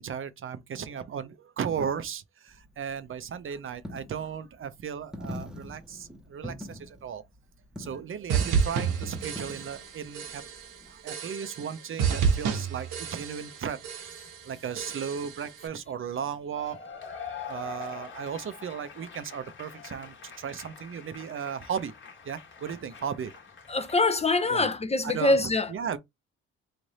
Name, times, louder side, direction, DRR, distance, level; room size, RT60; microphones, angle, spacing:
voice 1, 0.0-7.2 7.8-10.4 10.9-14.1 14.4-16.8 17.5-21.9 22.2-23.3 24.5-24.7 25.0-26.0, right 7 dB, 45° right, 0.6 m, -35 dB
Coin (dropping), 2.5-11.0, left 1 dB, ahead, 0.8 m, -44 dB
sound 1, 8.3-9.9 10.1-10.7 11.1-11.7 12.0-13.6 13.8-14.4 14.8-15.4, right 6 dB, 80° right, 1.1 m, -29 dB
Cheering / Applause / Crowd, 16.5-24.2, left 6 dB, 40° left, 1.2 m, -44 dB
voice 2, 23.7-25.7, left 2 dB, 20° left, 0.5 m, -24 dB
3.2 x 2.5 x 4.0 m
cardioid pair, 90°, 30 cm